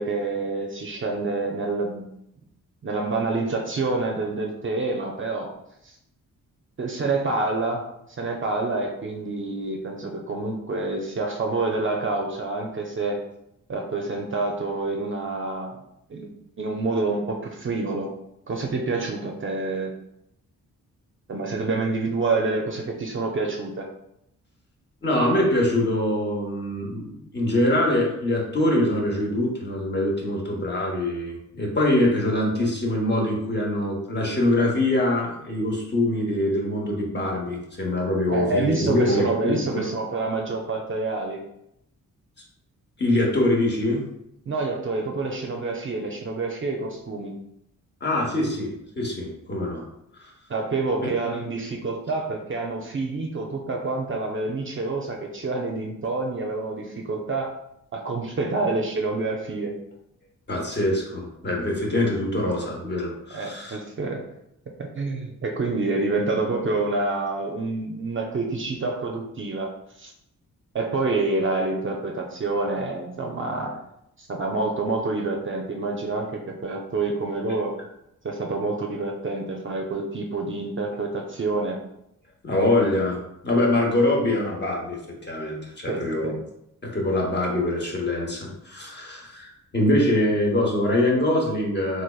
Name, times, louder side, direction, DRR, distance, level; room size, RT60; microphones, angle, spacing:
voice 1, 0.0-2.1 2.8-5.5 5.8-6.0 6.8-7.9 8.2-13.2 13.7-15.8 16.1-18.1 18.5-19.9 21.3-23.9 38.3-41.4 44.5-47.3 50.5-57.5 57.9-59.8 63.3-64.2 64.8-69.7 70.0-70.1 70.7-73.8 74.2-77.7 78.2-81.8 85.9-86.3, right 3 dB, 35° right, 1 dB, 0.4 m, -27 dB
voice 2, 25.0-39.8 43.0-44.0 48.0-49.8 50.1-50.3 51.0-51.1 60.5-63.8 82.4-83.2 83.4-86.3 86.8-92.0, left 1 dB, 30° left, -1 dB, 0.9 m, -24 dB
3.3 x 3.2 x 2.3 m, 0.81 s
cardioid pair, 90°, 34 cm